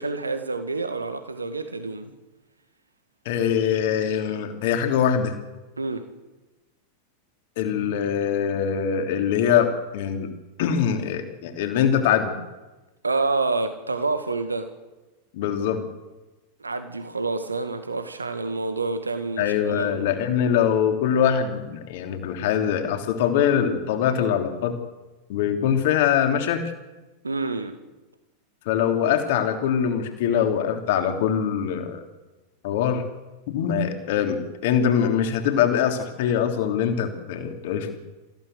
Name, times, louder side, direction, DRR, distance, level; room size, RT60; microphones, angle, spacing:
voice 1, 0.0-2.1 5.8-6.0 13.0-14.7 16.6-20.0 27.2-27.8, right 3 dB, 80° right, 8 dB, 2.0 m, -28 dB
voice 2, 3.2-5.3 7.6-10.3 10.6-12.3 15.3-15.8 19.4-24.8 25.3-26.7 28.6-32.0 32.6-33.0 33.5-38.0, left 8 dB, 50° left, 5 dB, 3.3 m, -23 dB
27.0 x 16.0 x 8.0 m, 1.1 s
figure-of-eight pair, 90°, 0 cm